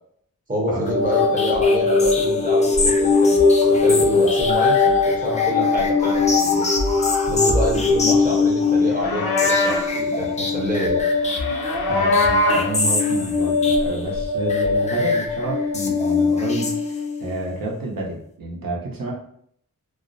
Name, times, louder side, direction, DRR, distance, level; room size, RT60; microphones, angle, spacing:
voice 1, 0.5-6.7 7.3-11.1, equal, 25° right, -3 dB, 0.8 m, -27 dB
sound 1, 0.9-17.3, left 4 dB, 20° left, 0.3 m, -20 dB
Livestock farm animals working animals, 8.8-9.9 11.2-12.8, left 2 dB, 85° left, 0.5 m, -22 dB
voice 2, 11.9-19.1, right 2 dB, 70° right, -2 dB, 0.8 m, -29 dB
2.3 x 2.0 x 2.5 m, 0.66 s
wide cardioid pair, 105°, 36 cm